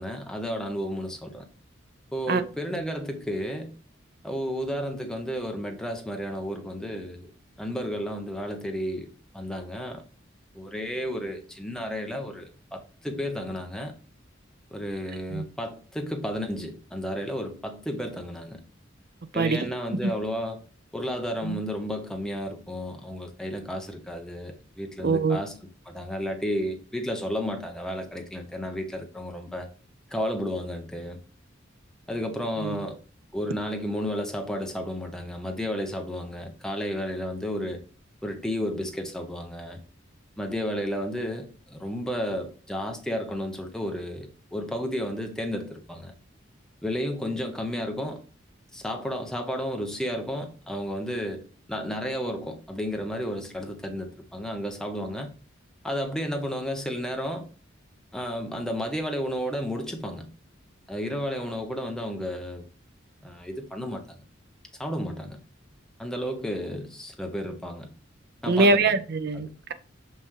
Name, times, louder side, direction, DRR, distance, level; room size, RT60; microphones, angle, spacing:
voice 1, 0.0-1.5 2.1-3.7 4.2-7.3 7.6-9.1 9.3-10.0 10.5-14.0 14.7-18.6 19.3-20.6 20.9-25.5 25.8-29.7 30.1-31.2 32.1-33.0 33.3-37.8 38.2-39.8 40.4-46.1 46.8-48.2 48.7-51.4 51.7-55.3 55.8-57.5 58.1-60.3 60.9-62.7 63.2-64.2 64.8-65.4 66.0-67.9 68.4-69.0 69.3-69.5, equal, 5° left, 0.9 m, -32 dB
voice 2, 25.0-25.4 32.6-32.8 68.5-69.7, right 3 dB, 50° right, 0.6 m, -23 dB
5.9 x 5.6 x 3.2 m
head